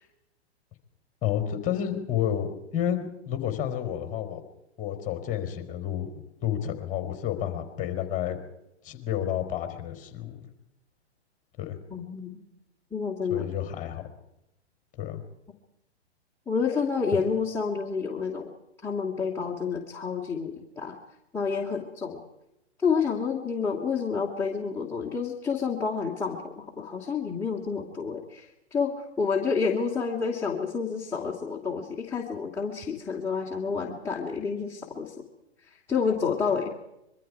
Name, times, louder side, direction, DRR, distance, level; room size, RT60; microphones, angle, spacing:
voice 1, 1.2-2.5 2.7-4.4 4.8-6.1 6.4-8.4 8.8-10.4 11.6-11.8 13.3-14.0 15.0-15.2 17.1-17.2, left 10 dB, 20° left, 7 dB, 3.9 m, -30 dB
voice 2, 11.9-12.4 12.9-13.5 16.5-18.5 18.8-21.0 21.3-22.2 22.8-35.1 35.9-36.7, left 5 dB, 5° left, -4 dB, 2.7 m, -29 dB
25.5 x 23.0 x 4.8 m, 0.87 s
figure-of-eight pair, 120°, 34 cm